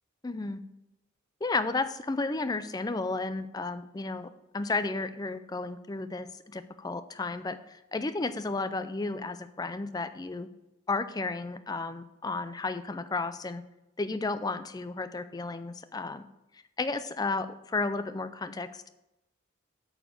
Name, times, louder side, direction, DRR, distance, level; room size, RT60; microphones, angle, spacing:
voice 1, 0.2-0.6 1.4-10.5 10.9-13.6 14.0-16.2 16.8-18.9, left 3 dB, 20° left, 11 dB, 0.4 m, -33 dB
8.7 x 4.4 x 6.8 m, 0.92 s
head